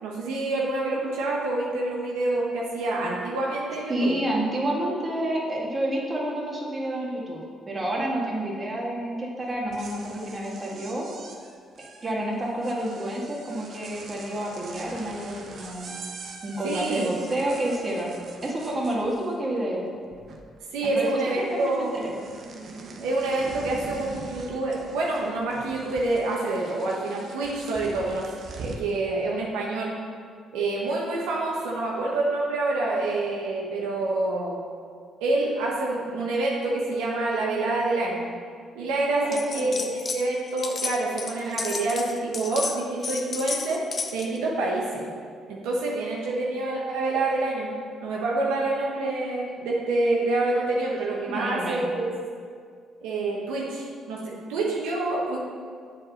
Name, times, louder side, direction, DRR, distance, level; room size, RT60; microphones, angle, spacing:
voice 1, 0.0-4.1 16.6-17.1 20.7-21.9 23.0-28.3 28.5-29.9 30.5-34.6 35.2-38.3 38.7-43.8 44.1-45.1 45.5-47.7 48.0-52.1 53.0-55.4, right 2 dB, 85° right, -4 dB, 1.1 m, -27 dB
voice 2, 3.9-11.1 12.0-16.0 16.4-18.2 18.4-19.9 20.8-21.1 21.5-21.9 39.2-39.6 51.3-51.9, right 1 dB, 30° right, -3 dB, 2.0 m, -29 dB
sound 1, 9.5-19.6 19.9-20.6 20.8-28.9, right 3 dB, 60° right, 0.9 m, -43 dB
sound 2, 39.3-40.2 40.5-44.4, left 4 dB, 45° left, 0.7 m, -32 dB
7.5 x 4.7 x 5.7 m, 2.1 s
supercardioid pair, 60°, 0 cm